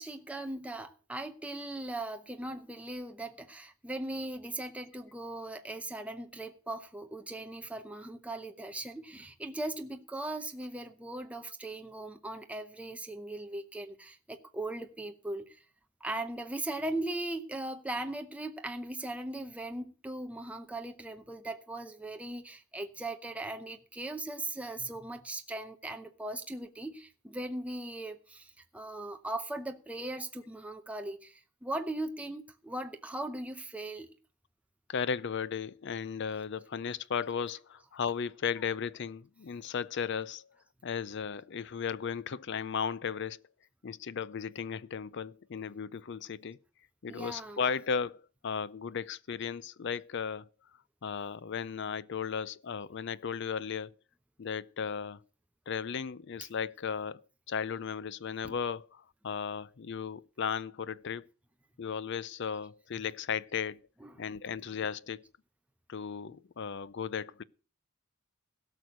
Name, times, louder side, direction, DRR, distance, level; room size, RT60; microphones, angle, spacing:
voice 1, 0.0-15.6 16.0-34.1 47.1-47.6 58.4-58.5 64.0-64.1, right 2 dB, 5° right, 0.7 m, -39 dB
voice 2, 34.9-40.5 40.8-43.4 43.8-46.6 47.0-50.5 51.0-54.0 54.4-55.2 55.7-57.2 57.5-61.3 61.8-63.8 64.2-65.2 65.9-67.4, left 6 dB, 55° left, 0.5 m, -35 dB
17.0 x 6.2 x 6.4 m
head